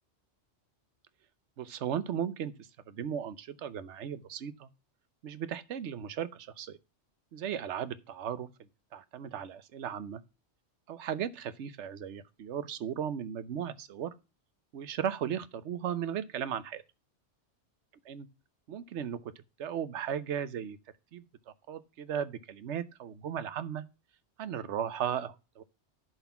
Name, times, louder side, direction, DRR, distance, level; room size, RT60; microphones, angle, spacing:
voice 1, 1.6-4.7 5.2-6.8 7.3-8.5 8.9-10.2 10.9-14.1 14.7-16.8 18.1-18.3 18.7-19.3 19.6-20.8 21.1-21.2 21.7-23.8 24.4-25.6, right 9 dB, 75° right, 1.1 m, -36 dB
11.0 x 4.1 x 5.7 m
omnidirectional pair, 1.2 m